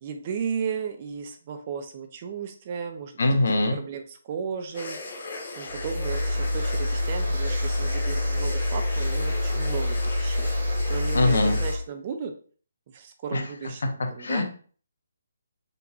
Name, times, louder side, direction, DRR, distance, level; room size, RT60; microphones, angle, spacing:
voice 1, 0.0-3.1 3.7-5.0 5.5-10.5 10.9-12.3 12.9-14.4, right 6 dB, 25° right, 6 dB, 0.4 m, -34 dB
voice 2, 3.2-3.8 11.1-11.6 13.3-13.4 14.2-14.4, left 2 dB, 65° left, 4 dB, 1.0 m, -22 dB
sound 1, 4.7-11.8, left 2 dB, 40° left, 1.1 m, -38 dB
sound 2, 5.7-11.8, left 1 dB, 75° right, 1.3 m, -26 dB
3.8 x 3.4 x 2.9 m, 0.42 s
hypercardioid pair, 175°, 0 cm